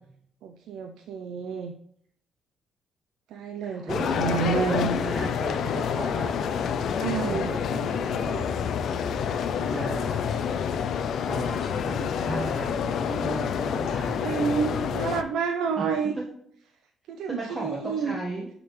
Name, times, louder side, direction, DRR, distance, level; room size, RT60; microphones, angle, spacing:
voice 1, 0.4-1.7 3.3-5.0 7.0-7.5 14.2-16.1 17.1-18.2, right 6 dB, 80° right, 5 dB, 0.5 m, -29 dB
voice 2, 3.6-6.3 6.9-8.7 9.5-10.2 11.2-14.3 14.8-15.0 15.8-15.9 17.3-18.5, right 2 dB, 30° right, -3 dB, 1.3 m, -36 dB
sound 1, 3.9-15.2, left 7 dB, 70° left, 0.4 m, -28 dB
11.0 x 3.7 x 3.1 m, 0.68 s
cardioid pair, 90°, 0 cm